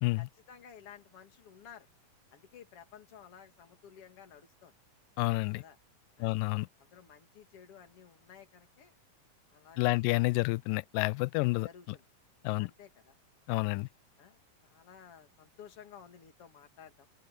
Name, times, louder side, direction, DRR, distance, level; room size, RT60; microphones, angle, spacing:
voice 1, 0.2-1.9 2.3-4.7 5.6-5.8 6.2-6.3 6.8-9.0 9.5-10.1 11.6-12.0 12.6-13.2 14.2-17.1, left 8 dB, 45° left, 3.1 m, -54 dB
voice 2, 5.2-5.6 6.2-6.7 9.8-11.7 12.4-12.7 13.5-13.9, left 23 dB, 90° left, 2.2 m, -29 dB
open air
omnidirectional pair, 3.8 m